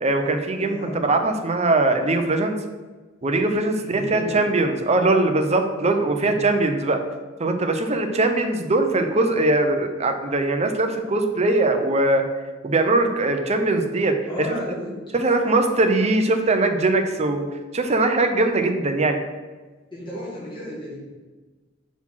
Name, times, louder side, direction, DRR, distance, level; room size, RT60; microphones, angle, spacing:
voice 1, 0.0-2.6 3.2-7.0 7.4-12.2 12.6-14.2 15.1-17.5 17.7-19.2, right 2 dB, 35° right, 6 dB, 0.7 m, -21 dB
voice 2, 0.6-1.0 3.7-4.4 6.0-6.4 14.3-15.0 19.9-20.9, left 1 dB, 25° left, -9 dB, 2.4 m, -33 dB
6.0 x 4.2 x 5.6 m, 1.3 s
head